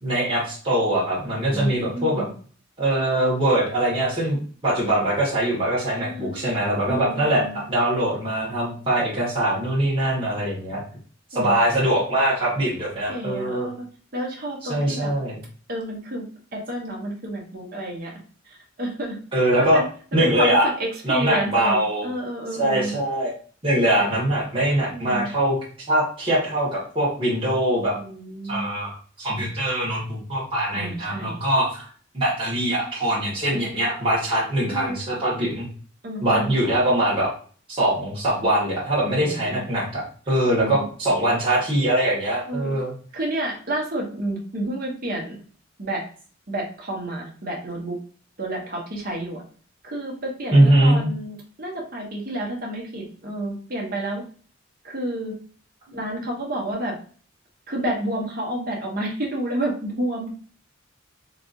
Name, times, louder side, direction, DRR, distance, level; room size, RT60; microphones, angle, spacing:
voice 1, 0.0-2.2 2.8-4.4 4.6-10.8 11.3-13.7 14.7-15.3 19.3-19.8 20.1-20.7 21.0-22.1 22.6-23.3 23.6-25.6 25.9-27.9 28.5-31.9 32.1-35.7 36.2-37.3 37.7-42.9 50.5-51.1, right 1 dB, 30° right, -8 dB, 1.6 m, -22 dB
voice 2, 1.5-2.3 6.0-6.5 6.9-7.6 11.3-12.0 13.1-13.9 14.1-15.1 15.7-18.2 18.4-23.0 24.9-25.3 27.9-28.7 30.7-31.4 33.4-33.7 34.7-35.1 36.0-36.6 39.0-39.7 40.3-40.8 42.4-42.7 43.1-45.4 45.8-46.0 46.5-48.0 48.4-49.4 49.8-54.2 54.8-55.3 55.9-56.9 57.7-60.3, right 1 dB, 50° right, -1 dB, 1.3 m, -30 dB
4.0 x 3.4 x 2.5 m, 0.43 s
head